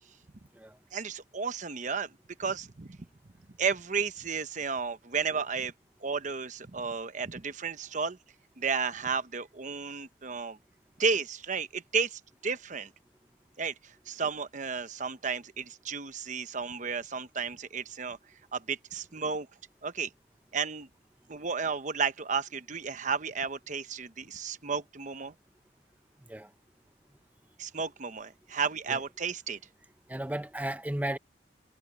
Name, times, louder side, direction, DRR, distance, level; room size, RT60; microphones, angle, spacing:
voice 1, 0.9-2.1 2.4-3.0 3.6-5.7 6.0-8.2 8.6-10.6 11.0-12.9 13.6-18.2 18.5-19.5 19.8-20.1 20.5-20.9 21.3-25.3 27.6-29.6, right 5 dB, 45° right, 1.0 m, -33 dB
voice 2, 30.1-31.2, right 1 dB, 10° right, 0.8 m, -34 dB
head